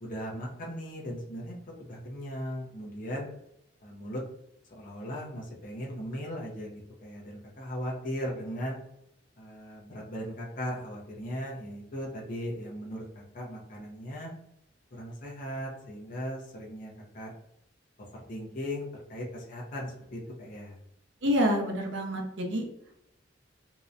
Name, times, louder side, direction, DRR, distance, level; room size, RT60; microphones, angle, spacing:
voice 1, 0.0-3.3 3.8-4.2 4.7-8.8 9.4-14.3 14.9-17.3 18.1-20.8, equal, 45° left, -3 dB, 0.6 m, -38 dB
voice 2, 21.2-22.6, equal, 70° right, 1 dB, 0.6 m, -27 dB
2.7 x 2.1 x 2.4 m, 0.81 s
head